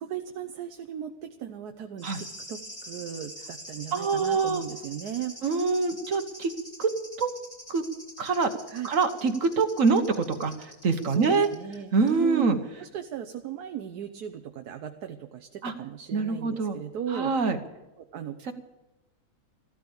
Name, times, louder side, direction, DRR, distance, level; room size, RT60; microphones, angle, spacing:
voice 1, 0.0-5.4 8.7-8.9 11.1-17.4 18.0-18.5, right 10 dB, 85° right, 6 dB, 1.3 m, -37 dB
sound 1, 2.0-11.8 12.1-12.2, equal, 20° left, 4.3 m, -45 dB
voice 2, 3.9-4.6 5.4-6.5 6.8-6.9 7.2-7.3 7.7-7.8 8.2-8.5 8.8-10.6 10.8-11.5 11.9-12.6 15.6-15.7 16.1-16.8 17.1-17.6 18.5-18.6, right 4 dB, 60° right, 8 dB, 1.4 m, -24 dB
14.5 x 13.0 x 7.0 m, 1.0 s
omnidirectional pair, 1.6 m